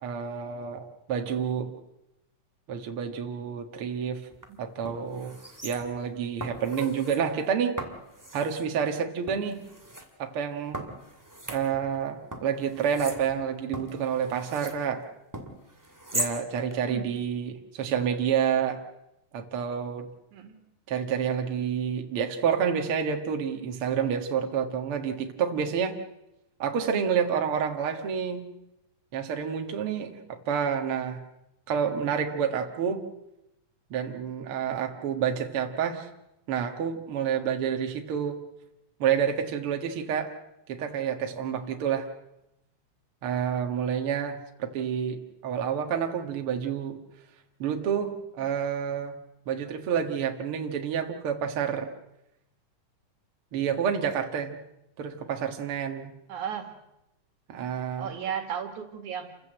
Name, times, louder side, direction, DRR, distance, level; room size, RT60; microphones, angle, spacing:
voice 1, 0.0-1.7 2.7-4.3 4.6-5.3 5.6-7.8 8.3-9.6 10.2-10.8 11.5-15.0 16.1-18.8 19.3-20.1 20.9-26.0 26.6-28.5 29.1-31.2 31.7-33.0 33.9-36.1 36.5-38.4 39.0-40.4 40.7-42.1 43.2-47.0 47.6-49.2 49.5-51.9 53.5-54.6 55.0-56.1 57.5-58.1, right 7 dB, 50° right, 4 dB, 2.3 m, -29 dB
sound 1, 4.3-4.4 4.8-6.1 6.4-7.2 7.8-8.7 9.3-10.0 10.7-12.0 12.3-14.8 15.3-16.4 16.7-16.8, right 1 dB, 5° right, 2.0 m, -38 dB
voice 2, 56.3-56.8 58.0-59.4, right 8 dB, 80° right, 6 dB, 3.2 m, -35 dB
28.5 x 15.0 x 7.9 m, 0.88 s
omnidirectional pair, 3.4 m